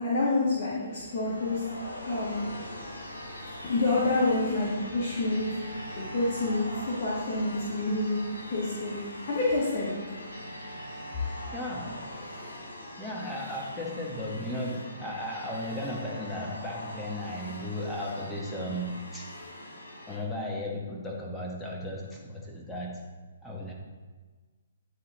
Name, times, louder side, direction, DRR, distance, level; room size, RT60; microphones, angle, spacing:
voice 1, 0.0-1.6 2.0-2.5 3.6-5.5 6.0-6.7 7.0-8.2 8.5-8.9 9.3-10.0, left 2 dB, 45° left, -7 dB, 1.7 m, -27 dB
sound 1, 0.7-20.2, left 1 dB, 85° left, 1.4 m, -42 dB
voice 2, 11.3-12.1 13.0-19.3 20.1-23.1 23.4-23.7, left 1 dB, 5° left, -3 dB, 1.3 m, -35 dB
9.7 x 4.2 x 3.9 m, 1.4 s
figure-of-eight pair, 130°, 0 cm